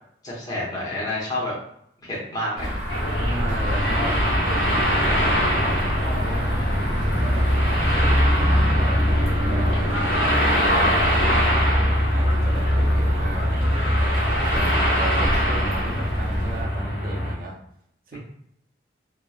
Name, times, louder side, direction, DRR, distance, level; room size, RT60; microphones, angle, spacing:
voice 1, 0.2-1.5 2.0-2.7 14.4-15.1, left 1 dB, 20° left, -7 dB, 0.9 m, -29 dB
sound 1, 2.6-16.6, equal, 80° right, 1.1 m, -29 dB
sound 2, 2.9-17.3, equal, 75° left, 1.1 m, -22 dB
voice 2, 3.2-6.5 7.2-13.7 14.5-17.6 18.1-18.2, right 1 dB, 50° right, -2 dB, 0.5 m, -36 dB
3.0 x 2.1 x 2.2 m, 0.71 s
head